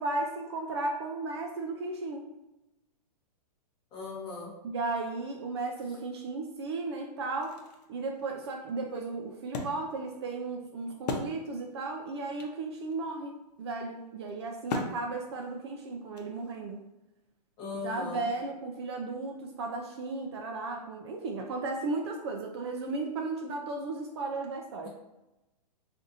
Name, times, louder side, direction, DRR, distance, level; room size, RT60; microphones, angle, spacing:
voice 1, 0.0-2.3 4.6-7.6 7.9-16.8 17.8-24.9, right 3 dB, 40° right, 2 dB, 0.4 m, -35 dB
voice 2, 3.9-4.5 17.6-18.3 24.8-24.9, left 4 dB, 20° left, -3 dB, 0.8 m, -38 dB
Wood, 7.2-11.8 12.1-12.2 12.4-16.8, left 3 dB, 70° left, 0.7 m, -40 dB
4.0 x 2.5 x 2.5 m, 0.97 s
hypercardioid pair, 160°, 21 cm